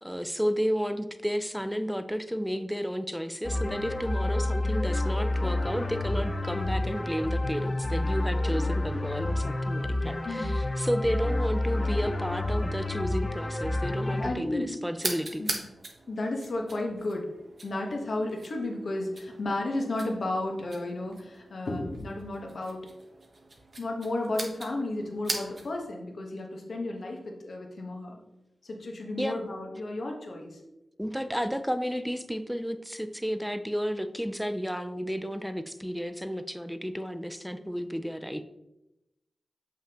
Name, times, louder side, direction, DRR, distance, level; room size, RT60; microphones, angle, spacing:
voice 1, 0.0-15.4 29.2-29.4 31.0-38.4, equal, ahead, 10 dB, 0.5 m, -32 dB
sound 1, 3.4-14.3, left 2 dB, 35° left, 0.9 m, -29 dB
voice 2, 10.2-10.6 14.1-14.8 15.4-15.6 16.1-17.3 17.6-22.9 23.8-28.2 28.6-30.6, left 2 dB, 65° left, 1 dB, 1.2 m, -33 dB
sound 2, 15.0-25.9, right 2 dB, 55° right, 1.1 m, -41 dB
6.8 x 5.7 x 2.9 m, 0.94 s
wide cardioid pair, 75°, 0 cm